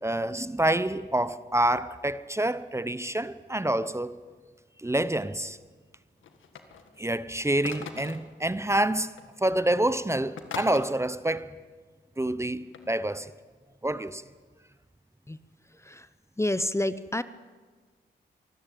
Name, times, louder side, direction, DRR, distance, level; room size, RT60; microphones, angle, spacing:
voice 1, 0.0-4.2 4.8-5.6 7.0-9.1 9.4-11.6 12.2-13.3 13.8-14.2, right 1 dB, 15° right, 0.9 m, -27 dB
sound 1, 6.2-7.0 7.6-8.3 9.2-9.3 9.5-9.8 10.4-10.9 12.7-12.9, left 6 dB, 85° left, 1.7 m, -41 dB
voice 2, 15.8-16.1 16.4-17.2, left 1 dB, 15° left, 0.8 m, -29 dB
25.0 x 13.5 x 9.2 m
cardioid pair, 55°, 20 cm